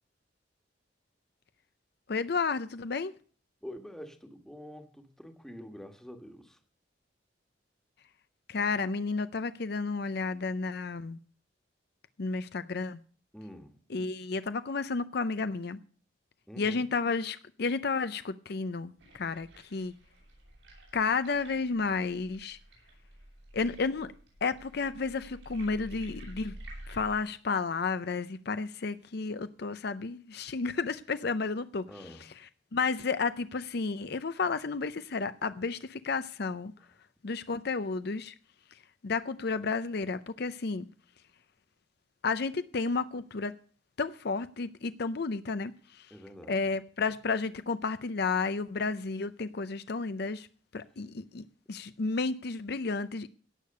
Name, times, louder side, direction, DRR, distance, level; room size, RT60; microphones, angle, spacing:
voice 1, 2.1-3.1 8.5-11.2 12.2-13.0 13.9-15.8 16.6-19.9 20.9-22.6 23.5-24.1 24.4-26.5 26.9-31.8 32.7-36.7 37.2-38.3 39.0-40.9 42.2-43.5 44.0-46.1 46.5-50.5 50.7-53.3, left 4 dB, 60° left, 0.6 m, -32 dB
voice 2, 3.6-6.6 13.3-13.8 16.5-16.8 31.9-32.3 36.8-36.9 46.1-46.6, equal, 5° left, 1.5 m, -46 dB
sound 1, 19.0-27.2, right 1 dB, 85° right, 7.1 m, -49 dB
17.0 x 6.7 x 6.6 m
head